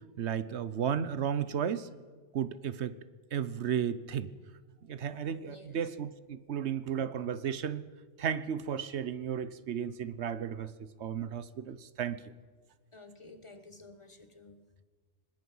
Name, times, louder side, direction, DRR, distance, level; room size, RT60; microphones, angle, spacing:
voice 1, 0.2-1.9 2.3-2.9 3.3-4.3 4.9-7.8 8.2-12.2, right 8 dB, 70° right, 1.1 m, -34 dB
voice 2, 5.4-5.9 12.9-14.8, left 2 dB, 25° left, 1.2 m, -53 dB
24.0 x 20.5 x 5.5 m
omnidirectional pair, 1.2 m